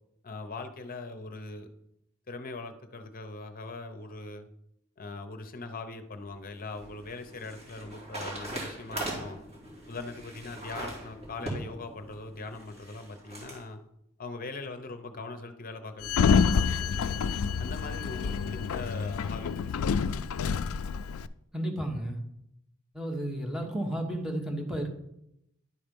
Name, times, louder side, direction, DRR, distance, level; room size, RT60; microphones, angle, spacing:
voice 1, 0.2-1.7 2.3-4.5 5.0-9.4 9.9-13.8 14.2-16.9 17.6-20.2, left 3 dB, 40° left, 8 dB, 0.8 m, -41 dB
sound 1, 6.3-13.6, right 2 dB, 30° right, 2.6 m, -41 dB
Sliding door, 16.0-21.3, left 6 dB, 75° left, 0.4 m, -27 dB
voice 2, 21.5-22.2 22.9-24.9, right 1 dB, ahead, 2 dB, 1.1 m, -32 dB
11.0 x 4.3 x 5.3 m, 0.80 s
head